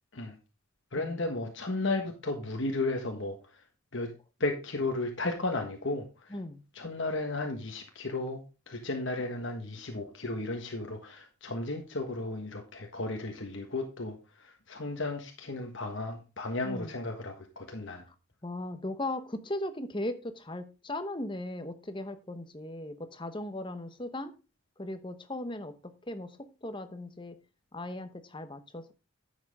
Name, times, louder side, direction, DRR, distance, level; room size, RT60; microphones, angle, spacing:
voice 1, 0.9-3.4 3.9-4.1 4.4-6.3 6.7-18.0, left 2 dB, 55° left, 1.4 m, -34 dB
voice 2, 6.3-6.6 16.6-16.9 18.4-24.3 24.8-25.8 26.1-27.3 27.7-28.9, left 1 dB, 20° left, 0.9 m, -37 dB
10.5 x 7.3 x 3.6 m
head